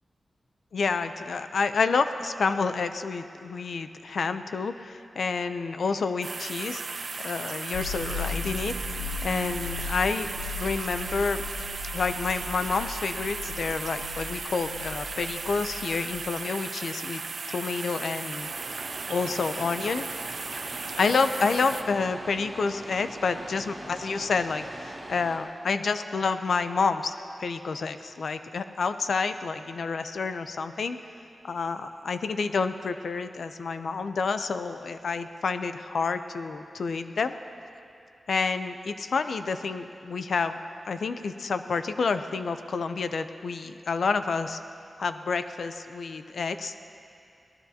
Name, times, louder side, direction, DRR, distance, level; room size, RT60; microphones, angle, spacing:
voice 1, 0.7-6.8 7.2-8.8 9.2-11.4 11.9-17.2 17.5-18.5 19.1-20.1 21.0-27.1 27.4-31.0 31.4-37.3 38.3-40.6 40.9-44.6 45.0-46.7, left 4 dB, 70° left, 10 dB, 0.5 m, -29 dB
sound 1, 6.2-21.8, right 4 dB, 60° right, 0.7 m, -36 dB
sound 2, 7.7-16.2, left 4 dB, 90° left, 2.7 m, -37 dB
sound 3, 18.4-25.4, right 1 dB, 25° right, 2.7 m, -42 dB
22.5 x 18.0 x 2.8 m, 2.6 s
wide cardioid pair, 155°, 0 cm